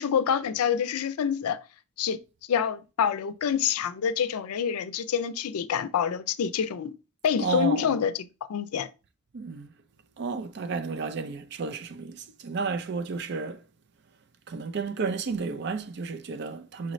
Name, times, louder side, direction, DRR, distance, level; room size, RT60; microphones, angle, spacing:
voice 1, 0.0-1.6 2.0-2.2 2.5-7.0 7.2-8.9, left 8 dB, 80° left, 0.4 m, -27 dB
voice 2, 7.4-8.0 9.3-9.7 10.2-13.6 14.5-16.9, right 4 dB, 50° right, 0.4 m, -32 dB
5.6 x 2.6 x 3.1 m
head